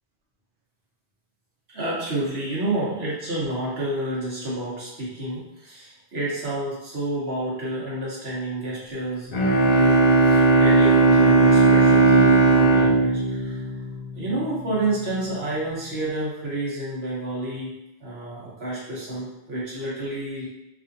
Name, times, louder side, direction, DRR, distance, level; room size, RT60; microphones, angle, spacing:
voice 1, 1.7-13.7 14.1-17.7 18.0-20.5, right 1 dB, 75° right, -7 dB, 1.2 m, -29 dB
Bowed string instrument, 9.3-14.3, right 3 dB, 50° left, 0.5 m, -17 dB
3.4 x 2.5 x 2.6 m, 0.91 s
omnidirectional pair, 1.1 m